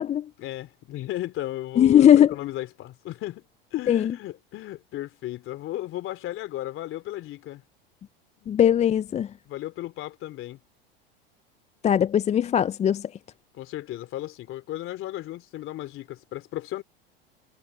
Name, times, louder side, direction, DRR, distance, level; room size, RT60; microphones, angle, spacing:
voice 1, 0.4-3.4 3.7-7.6 8.4-8.5 9.5-10.6 13.5-16.8, left 14 dB, 45° left, 3.3 m, -35 dB
voice 2, 1.8-2.3 3.9-4.1 8.5-9.3 11.8-13.1, left 10 dB, 25° left, 0.5 m, -19 dB
hypercardioid pair, 95°, 29 cm